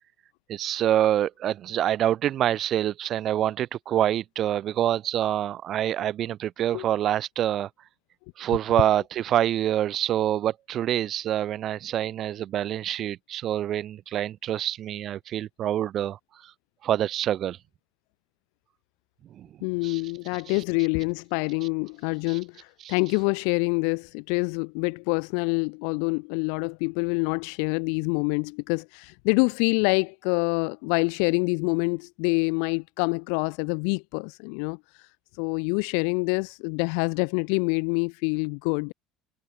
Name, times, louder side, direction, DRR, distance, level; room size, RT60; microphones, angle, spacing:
voice 1, 0.5-7.7 8.4-16.2 16.8-17.6 19.4-19.5 19.8-20.0 20.5-20.6 22.3-22.4 22.8-22.9, right 11 dB, 45° right, 4.1 m, -26 dB
voice 2, 19.6-35.1 35.4-38.9, left 40 dB or more, 80° left, 1.2 m, -26 dB
cardioid pair, 140°, 0 cm